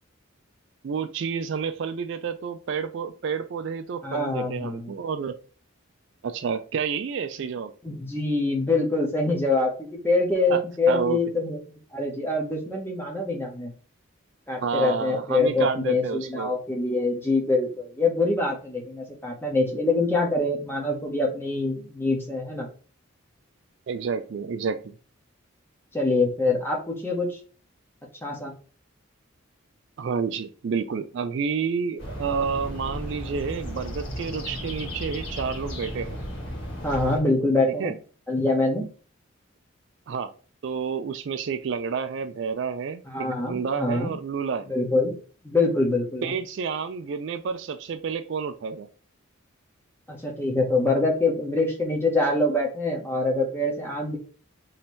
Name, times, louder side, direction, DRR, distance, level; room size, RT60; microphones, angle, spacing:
voice 1, 0.8-5.4 6.2-7.7 10.5-10.6 10.9-11.2 14.6-16.5 23.9-24.9 30.0-36.2 37.8-37.9 40.1-40.3 40.6-44.7 46.2-48.9, right 6 dB, 55° right, 9 dB, 0.3 m, -29 dB
voice 2, 4.0-4.9 7.8-11.6 11.9-13.7 14.5-22.7 25.9-27.4 28.2-28.5 36.8-37.9 38.3-38.9 43.1-44.1 44.7-45.1 45.4-46.3 50.1-54.2, left 2 dB, 10° left, 0 dB, 0.9 m, -25 dB
sound 1, 32.0-37.2, equal, 60° left, 1.8 m, -34 dB
3.2 x 2.8 x 4.3 m, 0.39 s
head